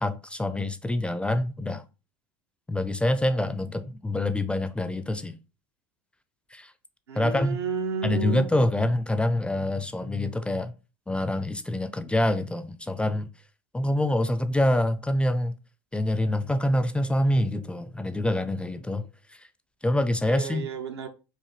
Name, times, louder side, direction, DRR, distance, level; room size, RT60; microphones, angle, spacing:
voice 1, 0.0-1.8 2.7-5.4 6.5-6.7 7.2-7.6 8.0-10.7 11.1-13.3 13.7-15.5 15.9-19.1 19.8-20.7, left 1 dB, 10° left, 0.4 m, -26 dB
voice 2, 7.1-8.5 20.3-21.1, right 5 dB, 80° right, 0.7 m, -31 dB
4.8 x 2.5 x 3.1 m
hypercardioid pair, 75°, 14 cm